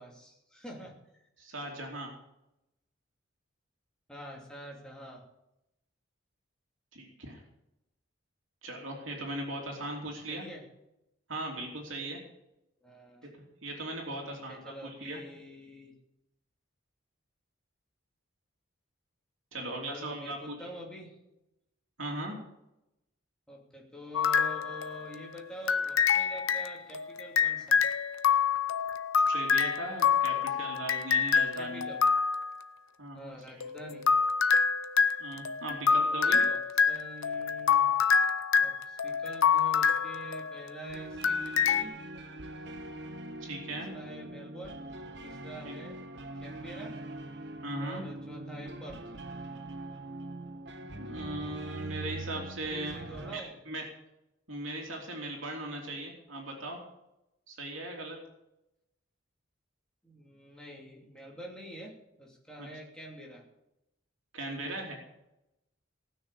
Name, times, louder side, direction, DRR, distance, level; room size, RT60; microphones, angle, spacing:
voice 1, 0.0-1.2 4.1-5.2 10.3-10.6 12.8-13.3 14.2-15.9 19.6-21.1 23.5-27.8 30.3-30.7 31.5-32.1 33.1-34.1 35.3-36.6 36.9-37.9 38.6-42.0 43.7-44.8 45.2-46.0 46.4-47.0 47.8-49.0 52.7-53.6 60.0-63.4, equal, 5° left, -2 dB, 2.9 m, -46 dB
voice 2, 1.4-2.1 6.9-7.4 8.6-10.4 11.3-12.2 13.2-13.3 13.6-15.2 19.5-20.6 22.0-22.4 29.3-31.9 33.0-33.4 35.2-36.4 43.4-43.9 45.6-45.7 47.6-48.0 51.0-53.0 53.3-53.8 54.5-56.8 57.5-58.2 62.6-62.7 64.3-65.0, right 1 dB, 75° right, -1 dB, 3.1 m, -38 dB
sound 1, 24.1-25.2 25.7-32.6 33.6-40.8 41.2-41.8, left 6 dB, 85° left, 0.7 m, -27 dB
sound 2, 40.8-53.4, right 2 dB, 55° right, 1.3 m, -42 dB
18.5 x 6.4 x 8.5 m, 0.88 s
head